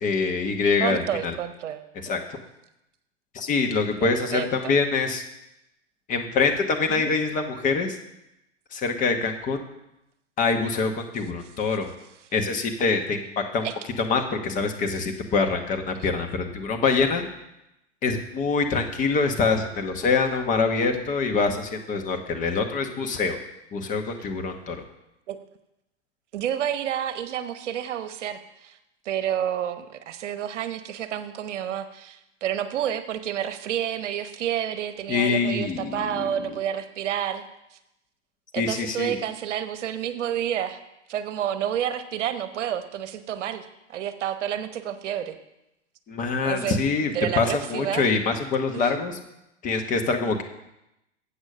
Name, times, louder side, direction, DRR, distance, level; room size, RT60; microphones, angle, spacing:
voice 1, 0.0-1.3 2.0-2.4 3.3-5.2 6.1-8.0 8.7-9.6 10.4-11.9 12.3-13.7 14.0-17.2 18.0-23.4 23.7-24.8 35.1-36.3 38.6-39.2 46.1-49.2 49.6-50.4, left 4 dB, 20° left, 5 dB, 1.0 m, -25 dB
voice 2, 0.8-1.9 4.0-4.8 6.9-7.0 13.6-13.7 15.9-16.1 25.3-25.4 26.3-28.8 29.0-37.4 38.5-40.8 41.1-43.6 43.9-45.4 46.4-46.8 47.1-48.0 48.7-48.9, right 10 dB, 70° right, 10 dB, 1.0 m, -29 dB
8.1 x 6.3 x 6.4 m, 0.88 s
hypercardioid pair, 130°, 37 cm